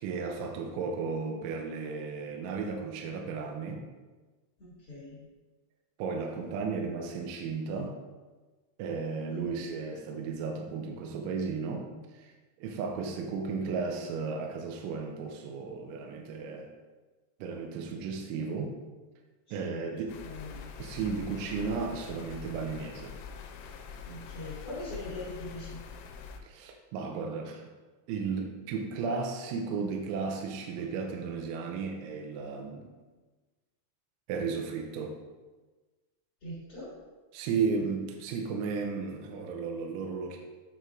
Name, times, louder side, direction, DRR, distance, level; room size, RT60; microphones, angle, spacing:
voice 1, 0.0-3.8 6.0-8.0 8.8-16.7 17.4-18.8 19.5-20.2 20.8-23.2 26.4-27.6 28.1-32.9 34.3-35.2 37.3-40.4, right 5 dB, 85° right, 2 dB, 2.8 m, -34 dB
voice 2, 4.6-5.2 9.3-9.6 19.5-19.7 20.2-20.6 24.0-25.8 36.4-36.9, left 1 dB, 50° left, -10 dB, 1.6 m, -41 dB
sound 1, 20.1-26.4, left 6 dB, 85° left, 3.1 m, -44 dB
9.3 x 4.5 x 2.5 m, 1.3 s
omnidirectional pair, 5.6 m